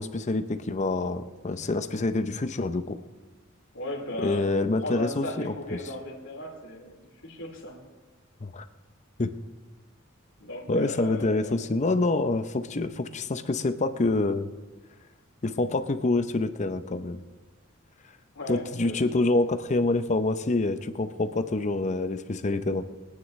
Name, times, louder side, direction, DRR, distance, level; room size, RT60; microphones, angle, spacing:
voice 1, 0.0-3.0 4.2-5.8 8.4-8.6 9.2-9.4 10.7-14.5 15.4-17.2 18.5-22.8, left 2 dB, 35° left, 10 dB, 0.6 m, -27 dB
voice 2, 3.7-4.5 4.8-7.8 10.4-11.6 18.3-19.2, left 1 dB, 60° left, 0 dB, 2.7 m, -36 dB
22.5 x 9.7 x 3.2 m, 1.3 s
head